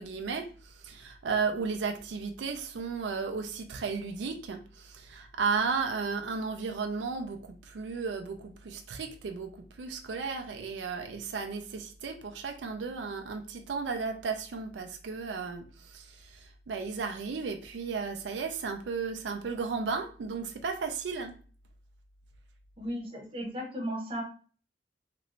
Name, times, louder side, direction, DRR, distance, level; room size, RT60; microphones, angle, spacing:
voice 1, 0.0-21.3, right 5 dB, 90° right, 5 dB, 0.4 m, -34 dB
voice 2, 22.8-24.2, equal, 30° right, 0 dB, 0.8 m, -35 dB
3.0 x 2.5 x 3.0 m, 0.40 s
head